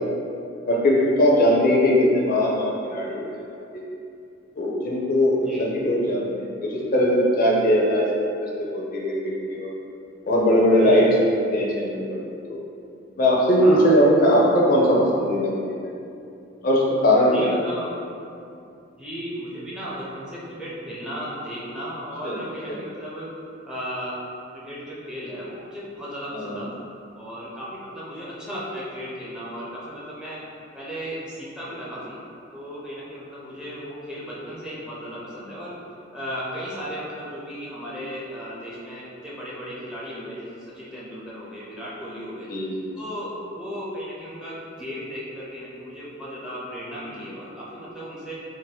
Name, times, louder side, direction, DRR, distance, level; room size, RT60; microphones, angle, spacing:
voice 1, 0.7-3.3 3.7-3.8 4.6-9.7 10.2-11.1 11.5-12.6 13.2-15.8 16.6-17.5 22.2-22.4 22.7-22.8 26.3-26.6 42.5-42.9, equal, 50° left, -3 dB, 0.4 m, -20 dB
voice 2, 17.3-18.0 19.0-23.3 23.6-24.2 24.5-26.7 27.2-30.4 30.7-32.2 32.5-35.8 36.1-42.5 43.0-48.3, equal, 5° right, -8 dB, 0.5 m, -35 dB
2.6 x 2.1 x 3.9 m, 2.5 s
head